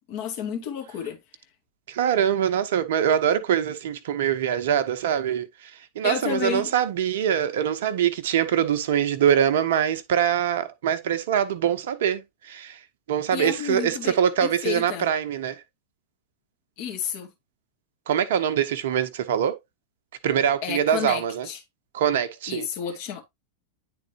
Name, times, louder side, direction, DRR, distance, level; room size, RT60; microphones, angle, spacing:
voice 1, 0.1-1.2 6.0-6.7 13.3-14.1 14.4-15.1 16.8-17.3 20.6-21.6 22.5-23.2, left 8 dB, 45° left, 1.8 m, -31 dB
voice 2, 1.9-12.8 13.1-15.6 18.1-19.6 20.2-21.5 21.9-22.7, right 9 dB, 55° right, 0.8 m, -24 dB
9.9 x 3.9 x 2.7 m
figure-of-eight pair, 90°, 0 cm